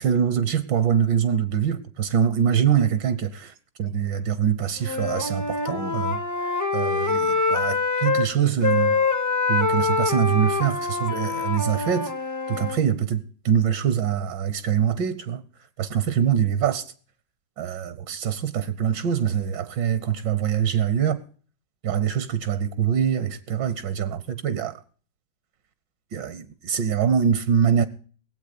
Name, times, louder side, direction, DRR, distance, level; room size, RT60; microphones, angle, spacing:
voice 1, 0.0-3.5 3.8-6.2 6.7-9.0 9.5-12.1 12.5-15.4 15.8-16.8 17.6-21.2 21.8-24.8 26.1-27.8, right 8 dB, 80° right, 1.5 m, -24 dB
Wind instrument woodwind instrument, 4.8-8.3 8.6-12.8, left 4 dB, 30° left, 0.3 m, -25 dB
18.5 x 8.1 x 6.6 m
omnidirectional pair, 1.9 m